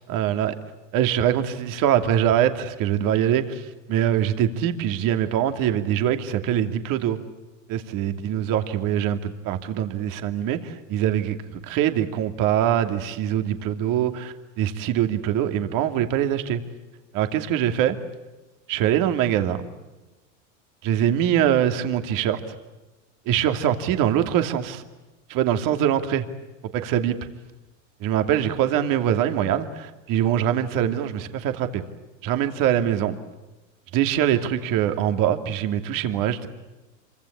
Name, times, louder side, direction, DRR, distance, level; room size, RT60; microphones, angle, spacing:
voice 1, 0.1-0.5 0.9-7.2 7.7-16.6 17.1-18.0 18.7-19.7 20.8-22.5 23.3-24.8 25.3-26.2 26.7-27.1 28.0-31.8 32.2-33.2 33.9-36.5, right 10 dB, 60° right, 7 dB, 2.7 m, -23 dB
27.0 x 24.5 x 8.7 m, 1.1 s
supercardioid pair, 105°, 38 cm